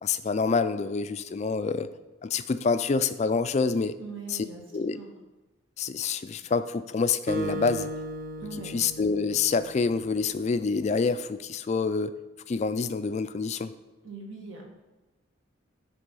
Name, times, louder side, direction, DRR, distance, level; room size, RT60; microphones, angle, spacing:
voice 1, 0.0-1.9 2.2-3.9 4.3-4.4 4.7-5.0 5.8-7.9 8.7-12.1 12.5-13.7, left 4 dB, 35° left, 11 dB, 0.3 m, -27 dB
voice 2, 4.0-4.6 4.9-5.1 8.4-8.7 14.0-14.6, right 4 dB, 75° right, 0 dB, 1.7 m, -41 dB
Acoustic guitar, 7.3-10.0, right 1 dB, 45° right, 0.7 m, -36 dB
10.5 x 3.5 x 5.4 m, 1.1 s
head